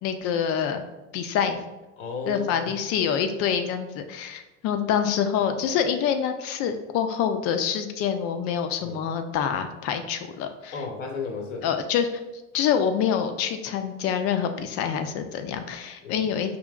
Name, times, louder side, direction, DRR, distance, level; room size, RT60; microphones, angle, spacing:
voice 1, 0.0-0.8 1.1-1.6 2.3-10.7 11.6-12.1 12.5-16.6, left 8 dB, 40° left, 8 dB, 0.4 m, -26 dB
voice 2, 2.0-2.7 8.8-9.0 10.7-11.6 16.0-16.3, left 4 dB, 90° left, 3 dB, 0.9 m, -33 dB
5.1 x 2.7 x 2.3 m, 1.1 s
supercardioid pair, 120°, 37 cm